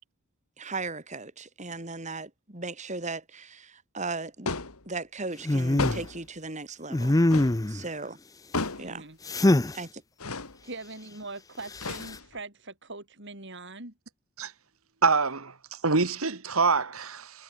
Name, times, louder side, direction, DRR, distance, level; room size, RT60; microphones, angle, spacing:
voice 1, 0.6-4.5 4.9-7.2 7.7-8.2 8.8-9.1 9.7-10.0, right 3 dB, 35° right, 3.6 m, -37 dB
sound 1, 4.5-4.8 5.8-6.3 7.3-7.6 8.5-8.9 10.2-10.6 11.8-12.4, left 3 dB, 90° left, 3.0 m, -32 dB
sound 2, 5.4-6.0 6.9-7.8 9.3-9.8 11.7-12.1, left 1 dB, 15° left, 0.6 m, -23 dB
voice 2, 8.8-9.2 10.6-13.9, right 3 dB, 55° right, 6.7 m, -42 dB
voice 3, 15.0-17.4, right 4 dB, 75° right, 1.9 m, -26 dB
head